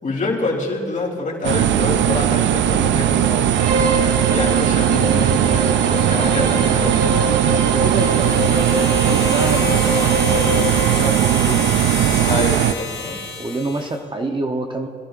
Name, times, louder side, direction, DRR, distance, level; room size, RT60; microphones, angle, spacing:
voice 1, 0.0-3.5 4.2-7.3 11.4-11.7 12.2-13.2, left 3 dB, 40° left, -2 dB, 3.4 m, -26 dB
sound 1, 1.4-12.7, right 11 dB, 65° right, 0.5 m, -18 dB
Bowed string instrument, 3.5-11.2, equal, 45° right, 2.9 m, -25 dB
voice 2, 7.7-11.8 13.4-14.9, right 2 dB, 25° right, 3 dB, 0.9 m, -28 dB
sound 2, 7.8-14.0, left 5 dB, 65° left, 3.4 m, -31 dB
23.0 x 11.5 x 2.6 m, 2.5 s
cardioid pair, 90°, 20 cm